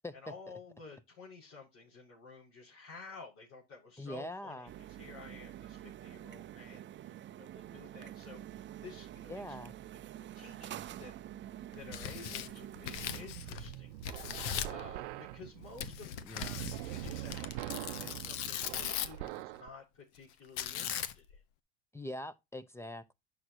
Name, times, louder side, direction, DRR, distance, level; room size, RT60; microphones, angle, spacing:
voice 1, 0.1-6.9 7.3-9.6 10.3-11.1 11.7-13.9 14.7-21.4, left 4 dB, 50° left, 6.1 m, -52 dB
voice 2, 4.0-4.7 9.3-9.7 16.2-16.6 21.9-23.1, left 1 dB, 10° left, 0.8 m, -43 dB
sound 1, 4.7-13.3, right 12 dB, 35° right, 0.6 m, -47 dB
Tearing, 11.7-13.7 14.0-14.8 15.8-19.3 20.6-21.4, left 11 dB, 80° left, 1.1 m, -39 dB
sound 2, 13.0-19.7, right 16 dB, 90° right, 0.7 m, -43 dB
11.0 x 6.5 x 2.9 m
supercardioid pair, 100°, 34 cm